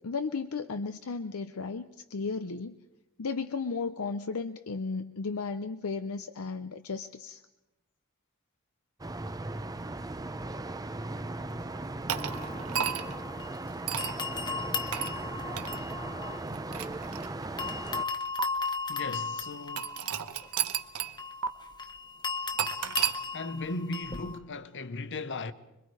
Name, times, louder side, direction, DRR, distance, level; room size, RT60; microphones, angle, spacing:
voice 1, 0.0-2.8 3.2-7.4, left 4 dB, 75° left, 0.7 m, -34 dB
sound 1, 9.0-18.0, right 2 dB, 15° right, 0.6 m, -37 dB
sound 2, 12.1-13.6 14.0-17.2 17.6-24.4, left 4 dB, 20° left, 1.0 m, -37 dB
sound 3, 12.1-13.2 13.9-14.2 14.9-15.2 15.6-15.8 16.5-17.6 18.4-18.5 19.8-21.2 21.4-21.5 22.6-23.2, right 9 dB, 85° right, 1.0 m, -32 dB
voice 2, 18.9-20.0 23.3-25.5, left 3 dB, 60° left, 1.0 m, -37 dB
26.5 x 23.0 x 4.8 m
head